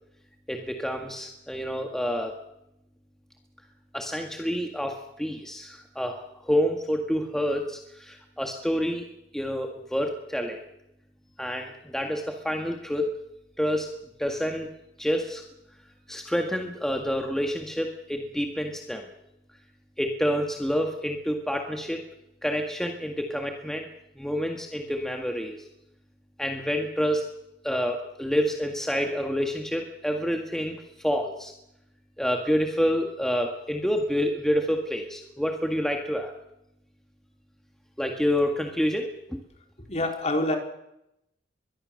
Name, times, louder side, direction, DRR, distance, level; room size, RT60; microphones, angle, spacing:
voice 1, 0.5-2.3 3.9-9.1 9.3-10.6 11.4-13.1 13.6-13.9 14.2-14.7 15.0-15.4 16.1-19.1 20.0-22.0 22.4-23.9 24.2-25.6 26.4-27.3 27.6-31.5 32.2-36.3 38.0-39.4, equal, 5° left, 2 dB, 1.8 m, -28 dB
voice 2, 39.9-40.6, left 1 dB, 35° left, 3 dB, 4.1 m, -26 dB
23.0 x 22.5 x 6.5 m, 0.84 s
head